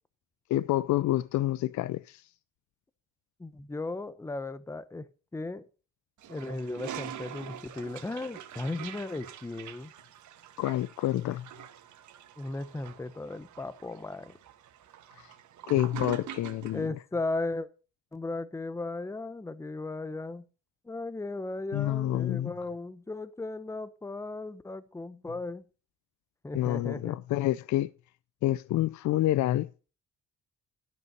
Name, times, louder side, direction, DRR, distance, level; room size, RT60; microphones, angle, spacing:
voice 1, 0.5-2.3 10.6-11.5 15.2-15.3 15.7-16.9 21.7-22.5 26.5-27.9 28.4-29.7, left 14 dB, 70° left, 0.5 m, -28 dB
voice 2, 3.4-5.7 6.3-9.9 12.4-14.4 16.7-17.7 18.1-20.5 20.8-25.6 26.4-27.2, left 2 dB, 10° left, 0.8 m, -36 dB
Toilet flush, 6.2-16.8, right 10 dB, 75° right, 1.3 m, -44 dB
12.5 x 5.6 x 5.9 m
cardioid pair, 90°, 30 cm